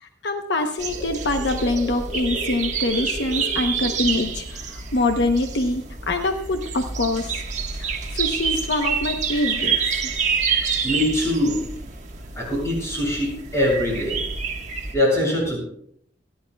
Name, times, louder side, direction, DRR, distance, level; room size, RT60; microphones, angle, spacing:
voice 1, 0.0-7.4 7.8-9.8, left 2 dB, 70° left, 5 dB, 0.9 m, -25 dB
sound 1, 0.8-14.9, right 5 dB, 40° right, 1.4 m, -27 dB
voice 2, 10.8-11.6 12.4-14.2 14.9-15.6, left 1 dB, 15° left, -3 dB, 7.2 m, -22 dB
27.5 x 11.0 x 2.3 m, 0.68 s
head